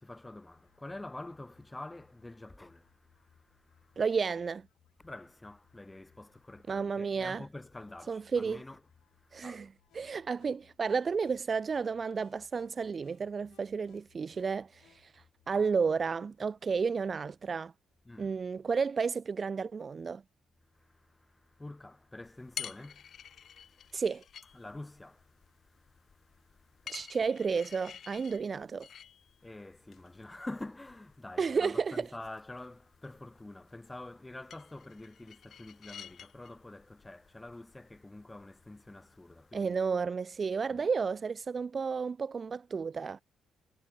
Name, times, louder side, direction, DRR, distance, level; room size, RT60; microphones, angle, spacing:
voice 1, 0.0-4.0 5.0-8.8 9.1-9.7 18.1-18.4 20.7-24.0 24.5-27.0 29.4-39.8 40.7-40.8, left 2 dB, 15° left, 4.0 m, -47 dB
sound 1, 0.5-15.9, left 12 dB, 75° left, 6.4 m, -68 dB
voice 2, 4.0-4.6 6.7-7.4 8.1-8.6 9.3-9.7 9.9-17.7 18.2-20.2 23.9-24.2 26.9-28.9 31.4-32.1 39.5-43.2, right 5 dB, 40° right, 0.4 m, -32 dB
sound 2, 22.2-39.7, left 8 dB, 60° left, 7.4 m, -51 dB
cardioid pair, 90°, 0 cm